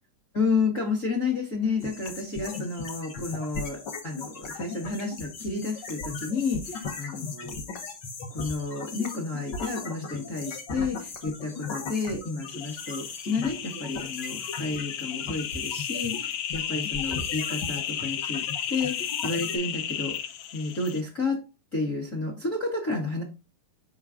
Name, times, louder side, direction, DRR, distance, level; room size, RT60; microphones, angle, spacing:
voice 1, 0.3-7.5 8.3-20.1 20.5-21.4 21.7-23.2, left 4 dB, 45° left, -2 dB, 1.1 m, -31 dB
sound 1, 1.8-19.6, left 4 dB, 65° left, 1.1 m, -38 dB
sound 2, 12.5-21.0, left 10 dB, 80° left, 1.6 m, -33 dB
5.6 x 4.8 x 3.5 m, 0.28 s
omnidirectional pair, 3.6 m